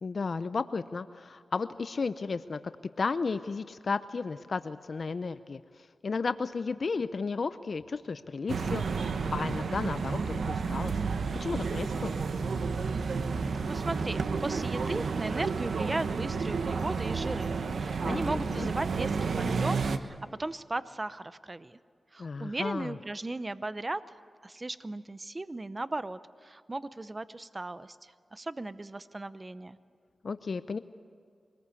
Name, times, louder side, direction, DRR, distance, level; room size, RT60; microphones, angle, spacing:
voice 1, 0.0-2.6 3.0-5.6 6.0-10.9 11.3-12.1 18.0-18.7 22.2-23.0 30.2-30.8, left 4 dB, 60° left, 12 dB, 0.6 m, -33 dB
sound 1, 8.5-20.0, right 5 dB, 80° right, 1.1 m, -31 dB
voice 2, 13.7-21.8 22.1-24.0 24.4-29.8, right 2 dB, 30° right, 14 dB, 0.7 m, -37 dB
24.0 x 19.5 x 8.4 m, 2.2 s
wide cardioid pair, 75°, 0 cm